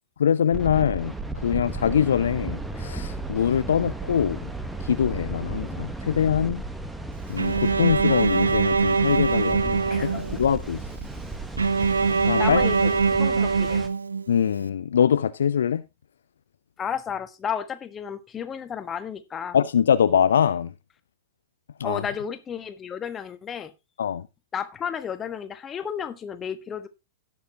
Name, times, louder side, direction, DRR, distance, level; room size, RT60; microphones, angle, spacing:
voice 1, 0.2-1.1 1.4-4.5 4.8-6.6 7.3-10.1 10.4-10.8 12.1-12.9 14.3-15.8 19.5-20.7 21.8-22.0 24.0-24.3, left 8 dB, 65° left, 0.5 m, -23 dB
sound 1, 0.5-13.9, right 2 dB, 5° right, 1.2 m, -34 dB
Bowed string instrument, 7.4-10.6 11.6-14.5, right 5 dB, 75° right, 0.6 m, -23 dB
voice 2, 9.9-10.2 11.8-12.1 12.4-13.8 16.8-19.6 21.8-23.7 24.5-26.9, left 7 dB, 20° left, 1.3 m, -33 dB
17.5 x 7.0 x 2.9 m
figure-of-eight pair, 100°, 0 cm